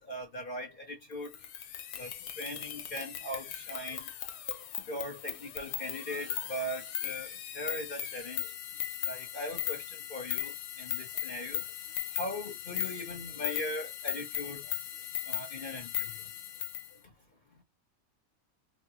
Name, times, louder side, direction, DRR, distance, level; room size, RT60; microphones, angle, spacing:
voice 1, 0.1-1.3 2.0-2.1 2.4-4.1 4.9-7.3 7.5-8.5 9.1-10.5 10.8-11.6 12.1-14.7 15.3-16.1, left 1 dB, 40° left, 0.9 m, -39 dB
sound 1, 1.3-16.9, left 10 dB, 90° left, 1.1 m, -38 dB
3.1 x 2.1 x 2.7 m
omnidirectional pair, 1.6 m